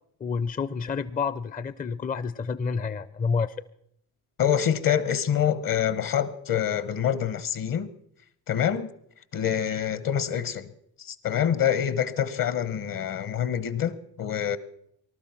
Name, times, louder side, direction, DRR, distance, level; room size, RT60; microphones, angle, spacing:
voice 1, 0.2-3.6, left 5 dB, 25° left, 0.5 m, -29 dB
voice 2, 4.4-7.9 8.5-8.9 9.3-10.7 11.0-14.6, left 9 dB, 60° left, 1.2 m, -26 dB
19.0 x 12.0 x 5.9 m
cardioid pair, 80°, 38 cm